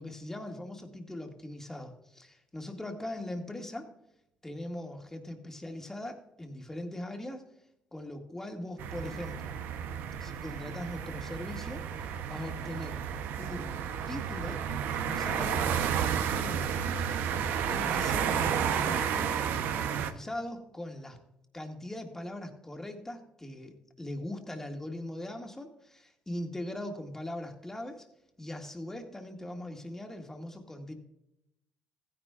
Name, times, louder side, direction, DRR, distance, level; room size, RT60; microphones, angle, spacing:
voice 1, 0.0-3.9 4.4-7.4 7.9-9.6 10.2-13.0 13.4-13.7 14.1-15.7 16.3-16.7 17.7-19.4 19.7-21.2 21.5-28.1 28.4-31.0, left 1 dB, 15° left, 3 dB, 2.0 m, -40 dB
sound 1, 8.8-20.1, right 8 dB, 80° right, 0.9 m, -32 dB
15.5 x 10.0 x 2.5 m, 0.84 s
cardioid pair, 85°, 3 cm